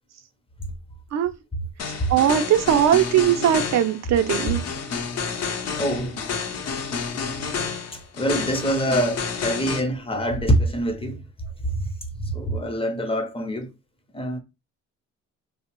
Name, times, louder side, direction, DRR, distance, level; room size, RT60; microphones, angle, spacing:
sound 1, 1.8-9.8, left 5 dB, 55° left, 0.7 m, -30 dB
voice 1, 2.1-4.6, right 10 dB, 60° right, 0.5 m, -19 dB
voice 2, 5.8-6.2 7.9-11.2 11.6-13.7 14.1-14.4, right 1 dB, 20° left, 0.6 m, -25 dB
2.8 x 2.0 x 2.9 m
cardioid pair, 90°, 30 cm